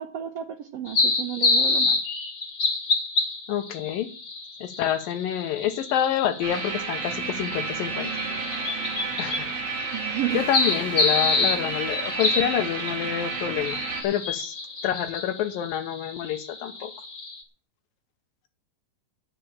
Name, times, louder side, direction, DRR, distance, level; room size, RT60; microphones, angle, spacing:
voice 1, 0.0-2.0 9.9-10.4, right 11 dB, 80° right, 5 dB, 1.4 m, -32 dB
sound 1, 0.9-17.4, left 3 dB, 55° left, 0.9 m, -28 dB
voice 2, 3.5-4.1 4.6-8.1 9.2-9.5 10.3-14.6 14.8-16.9, left 10 dB, 75° left, 8 dB, 2.8 m, -27 dB
sound 2, 6.4-14.0, right 5 dB, 60° right, 4.1 m, -31 dB
sound 3, 10.3-14.4, equal, 5° left, 2.6 m, -46 dB
9.5 x 9.2 x 7.2 m, 0.41 s
omnidirectional pair, 4.2 m